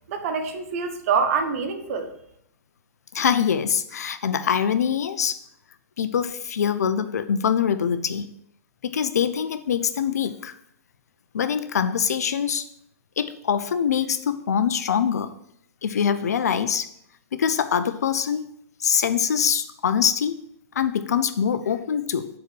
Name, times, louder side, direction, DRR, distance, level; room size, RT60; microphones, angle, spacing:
voice 1, 0.1-2.1, right 5 dB, 60° right, 6 dB, 1.3 m, -25 dB
voice 2, 3.1-5.4 6.0-8.3 8.8-10.5 11.3-12.6 13.2-15.3 15.8-16.9 17.3-18.4 18.8-20.4 20.7-22.3, left 7 dB, 80° left, 12 dB, 0.6 m, -24 dB
7.1 x 4.2 x 6.2 m, 0.72 s
hypercardioid pair, 115°, 9 cm